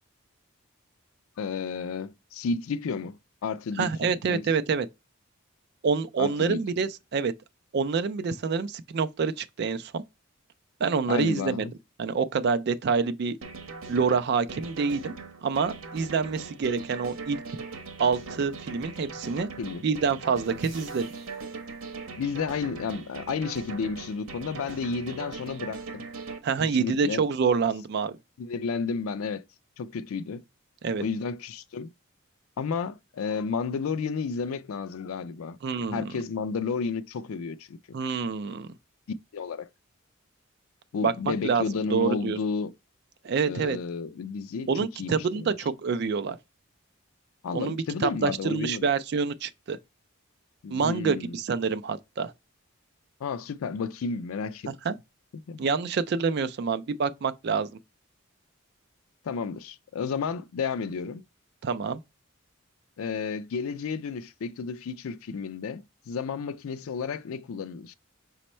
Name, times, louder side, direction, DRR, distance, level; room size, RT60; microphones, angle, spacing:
voice 1, 1.4-4.4 6.2-6.6 11.1-11.7 19.6-19.8 22.2-26.0 26.6-27.2 28.4-29.4 29.8-30.4 31.0-31.9 32.6-35.6 35.9-38.0 39.3-39.7 40.9-42.7 43.4-44.7 45.0-45.6 47.4-48.9 50.6-51.4 53.2-54.7 55.5-55.7 59.2-61.2 63.0-67.9, left 5 dB, 80° left, 0.4 m, -32 dB
voice 2, 3.8-4.9 5.8-7.3 7.7-10.0 10.8-11.6 12.0-13.4 13.9-15.1 15.4-17.4 18.0-19.5 19.8-21.1 26.4-28.2 30.8-31.0 35.6-36.1 37.9-38.7 41.0-41.6 41.9-42.4 43.2-43.8 44.7-46.4 47.5-49.8 50.7-52.3 54.7-54.9 55.6-57.7 61.6-62.0, right 5 dB, 50° right, 0.3 m, -27 dB
sound 1, 13.4-26.4, right 4 dB, 75° right, 0.8 m, -40 dB
sound 2, 20.4-22.0, right 1 dB, 5° right, 2.2 m, -54 dB
5.1 x 2.1 x 4.2 m
head